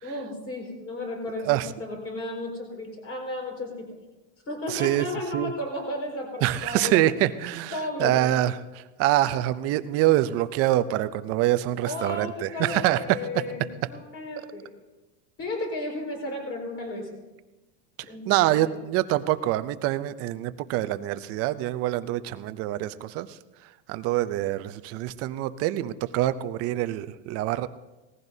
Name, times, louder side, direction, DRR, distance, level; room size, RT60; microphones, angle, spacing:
voice 1, 0.0-3.9 4.5-7.0 7.7-8.4 11.8-14.7 15.4-17.2 18.1-18.8, left 1 dB, 30° left, 1 dB, 4.7 m, -34 dB
voice 2, 4.7-5.1 5.3-5.5 6.4-13.0 18.3-23.3 23.9-27.7, right 14 dB, 30° right, 13 dB, 0.4 m, -25 dB
19.0 x 15.0 x 2.7 m, 1.1 s
supercardioid pair, 135°, 50 cm